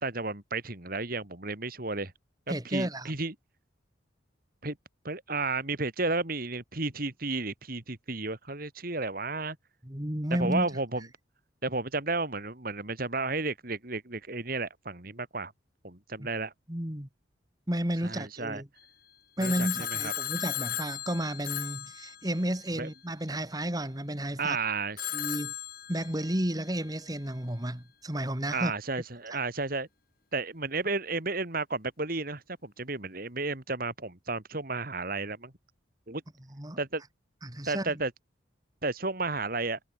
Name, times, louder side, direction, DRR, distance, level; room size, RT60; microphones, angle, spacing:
voice 1, 0.0-2.1 2.6-3.3 4.6-4.8 5.0-9.6 10.4-11.1 11.6-15.5 15.8-16.5 18.0-18.6 19.4-20.1 22.8-22.9 24.4-25.1 28.5-29.9 30.3-35.5 36.1-36.2 36.8-37.0 37.7-38.1 38.8-39.8, right 3 dB, 50° right, 2.6 m, -32 dB
voice 2, 2.5-3.1 9.8-10.7 16.2-16.3 16.7-17.1 17.7-18.7 19.4-24.6 25.1-25.5 25.9-28.7 36.5-36.8 37.4-37.9, right 1 dB, 20° right, 2.4 m, -32 dB
Telephone, 19.4-22.7 25.0-26.5, left 11 dB, 50° left, 2.6 m, -36 dB
head